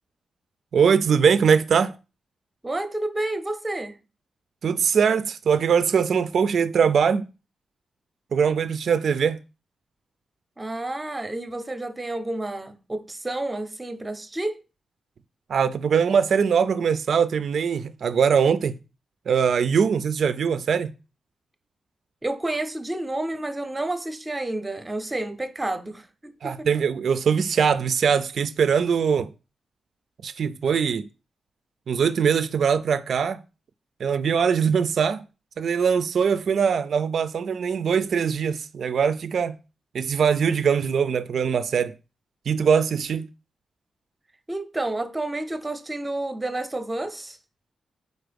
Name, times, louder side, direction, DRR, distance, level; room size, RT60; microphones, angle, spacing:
voice 1, 0.7-1.9 4.6-7.3 8.3-9.4 15.5-18.8 19.3-20.9 26.4-29.3 30.2-31.1 31.9-33.4 34.0-35.2 35.6-39.5 39.9-41.9 42.5-43.3, right 6 dB, 65° right, 0.3 m, -22 dB
voice 2, 2.6-4.0 10.6-14.6 22.2-26.7 44.5-47.4, right 2 dB, 15° right, 0.6 m, -30 dB
4.6 x 4.1 x 5.1 m
wide cardioid pair, 150°, 0 cm